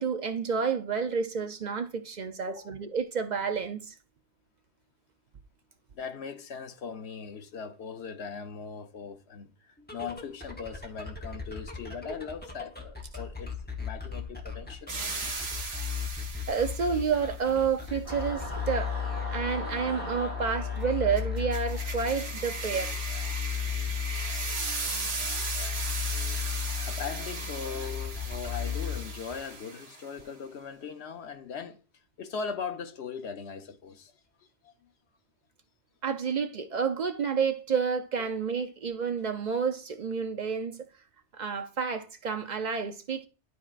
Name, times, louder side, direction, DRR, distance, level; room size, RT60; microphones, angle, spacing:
voice 1, 0.0-3.9 16.5-18.9 19.3-22.9 36.0-40.8 41.3-43.3, right 6 dB, 55° right, 0.5 m, -30 dB
voice 2, 5.9-14.9 26.8-31.8 32.2-34.1 34.6-34.9 38.2-38.4, left 6 dB, 70° left, 1.0 m, -40 dB
sound 1, 9.8-29.5, left 7 dB, 10° left, 0.8 m, -35 dB
sound 2, 14.9-17.2 21.2-30.1, right 4 dB, 80° right, 1.4 m, -37 dB
Singing / Musical instrument, 18.0-22.7, right 1 dB, 35° left, 3.1 m, -41 dB
11.5 x 4.3 x 2.4 m
omnidirectional pair, 1.2 m